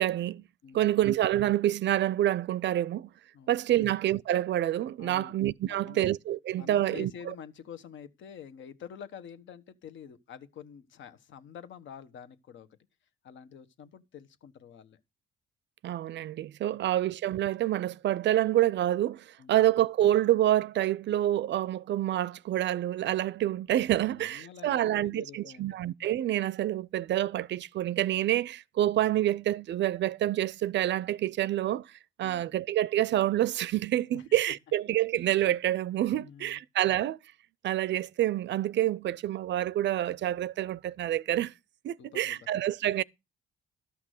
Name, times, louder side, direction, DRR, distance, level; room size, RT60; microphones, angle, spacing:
voice 1, 0.0-0.4 0.7-3.1 3.5-7.3 15.8-31.9 32.2-37.2 37.6-41.5 41.8-43.0, right 13 dB, 65° right, 0.5 m, -27 dB
voice 2, 0.6-0.9 3.3-3.9 5.0-5.3 5.6-6.0 6.6-12.7 13.2-15.0 16.7-17.0 19.4-19.6 24.0-25.8 32.2-32.5 34.1-34.5 36.1-36.6 42.0-42.4, left 8 dB, 70° left, 1.3 m, -47 dB
13.0 x 6.0 x 6.4 m
cardioid pair, 90°, 20 cm